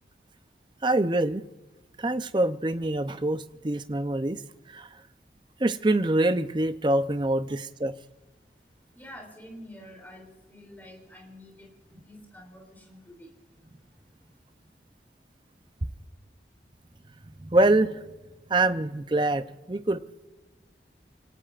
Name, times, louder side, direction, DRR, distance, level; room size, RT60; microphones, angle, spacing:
voice 1, 0.8-1.4 2.0-4.4 4.7-4.9 5.6-7.9 17.4-18.0 18.5-20.0, right 2 dB, 25° right, 10 dB, 0.6 m, -25 dB
voice 2, 8.9-13.3, equal, 10° left, 2 dB, 3.2 m, -48 dB
28.0 x 18.0 x 2.5 m, 1.2 s
head